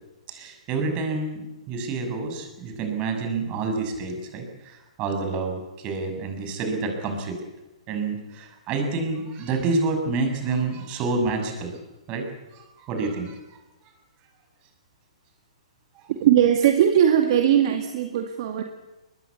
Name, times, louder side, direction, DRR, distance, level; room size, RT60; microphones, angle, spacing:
voice 1, 0.3-7.4 7.9-11.8 12.1-12.2 12.5-13.4, right 3 dB, 30° right, 5 dB, 6.5 m, -28 dB
voice 2, 16.1-18.6, right 10 dB, 50° right, 4 dB, 2.2 m, -19 dB
22.0 x 20.5 x 8.5 m, 1.0 s
hypercardioid pair, 140°, 4 cm